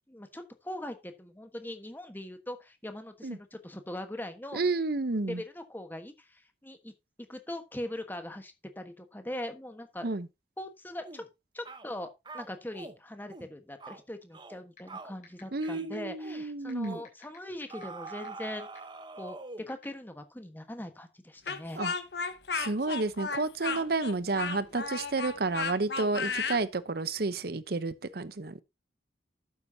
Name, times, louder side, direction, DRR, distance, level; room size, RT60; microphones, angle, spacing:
voice 1, 0.1-4.6 5.2-6.9 7.3-10.1 10.6-11.2 11.5-12.1 12.3-18.7 19.1-19.4 19.7-21.8 23.7-23.8, left 1 dB, 10° left, 1.3 m, -41 dB
voice 2, 4.5-5.4 10.0-10.3 15.5-17.0 21.8-21.9 22.5-28.6, right 3 dB, 55° right, 0.8 m, -31 dB
sound 1, 11.0-11.3 11.6-11.9 12.2-13.0 13.3-13.5 13.8-14.0 14.3-14.6 14.9-15.2 15.6-15.9 16.2-16.4 16.9-17.1 17.7-19.7, right 3 dB, 25° right, 0.9 m, -44 dB
sound 2, 14.8-14.9 15.2-15.6 15.9-16.0 16.7-18.4 18.8-18.9 19.7-19.8, left 8 dB, 45° left, 6.0 m, -52 dB
Speech, 21.5-26.6, left 5 dB, 65° left, 1.3 m, -34 dB
12.0 x 8.7 x 2.8 m
head